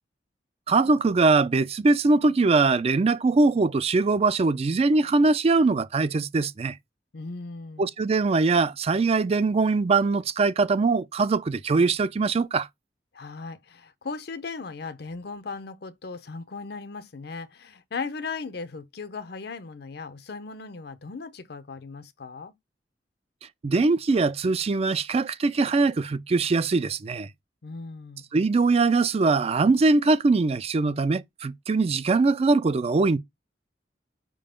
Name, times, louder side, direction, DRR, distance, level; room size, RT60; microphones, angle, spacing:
voice 1, 0.7-6.8 7.8-12.7 23.6-27.3 28.3-33.2, right 3 dB, 35° right, 0.4 m, -22 dB
voice 2, 7.1-7.9 13.1-22.5 27.6-28.3, left 4 dB, 65° left, 0.7 m, -37 dB
5.0 x 3.8 x 5.1 m
head